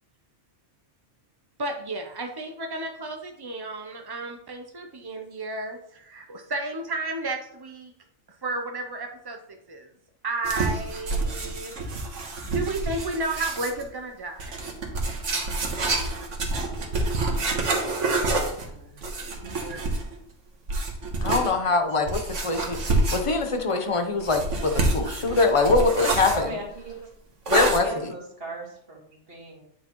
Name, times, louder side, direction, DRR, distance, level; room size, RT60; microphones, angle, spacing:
voice 1, 1.6-7.9 8.4-9.4 9.7-9.9 10.2-11.7 12.5-14.7 18.7-18.8 19.7-19.8, right 2 dB, 35° right, 3 dB, 0.4 m, -32 dB
sound 1, 10.4-13.8 14.4-20.2 20.7-21.5 22.1-23.5 24.2-26.4 27.5-27.8, right 2 dB, 80° right, 1.6 m, -27 dB
voice 2, 18.4-18.9 19.4-19.7 26.3-27.0 27.8-29.6, right 1 dB, 50° right, -1 dB, 2.1 m, -39 dB
voice 3, 21.2-26.5 27.5-27.9, left 3 dB, 30° left, 5 dB, 0.8 m, -23 dB
9.3 x 5.7 x 3.0 m, 0.71 s
omnidirectional pair, 1.3 m